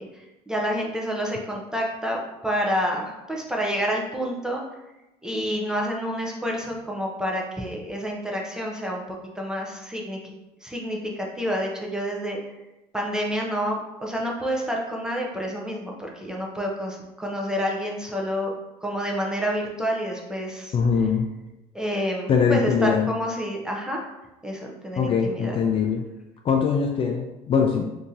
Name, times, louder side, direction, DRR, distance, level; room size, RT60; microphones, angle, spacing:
voice 1, 0.0-4.6 5.2-10.3 10.6-12.4 12.9-18.5 18.8-20.7 21.7-24.1 24.4-25.6, equal, 5° right, -1 dB, 0.7 m, -28 dB
voice 2, 20.7-21.3 22.3-23.1 25.0-26.0 26.4-27.8, left 6 dB, 40° left, 3 dB, 0.4 m, -22 dB
2.9 x 2.7 x 3.7 m, 0.98 s
cardioid pair, 105°, 15 cm